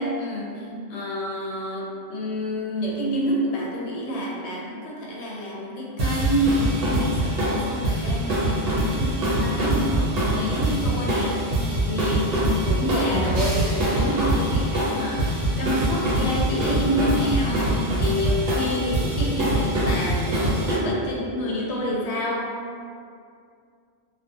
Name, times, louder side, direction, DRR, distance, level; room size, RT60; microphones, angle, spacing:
voice 1, 0.0-22.6, equal, 80° left, -4 dB, 0.9 m, -28 dB
sound 1, 6.0-20.8, right 1 dB, 65° right, 0.9 m, -24 dB
2.4 x 2.3 x 2.7 m, 2.3 s
omnidirectional pair, 1.1 m